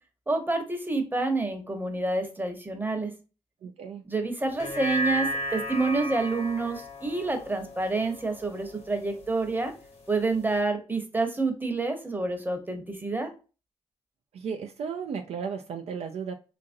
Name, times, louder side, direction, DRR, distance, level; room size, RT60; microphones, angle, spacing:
voice 1, 0.3-3.1 4.1-9.7 10.1-13.3, right 3 dB, 15° right, 5 dB, 0.8 m, -28 dB
voice 2, 3.6-4.0 14.3-16.3, right 6 dB, 60° right, 4 dB, 0.4 m, -34 dB
sound 1, 4.5-9.1 9.5-9.6, equal, 60° left, 1.0 m, -34 dB
2.9 x 2.5 x 2.5 m, 0.33 s
supercardioid pair, 45°, 12 cm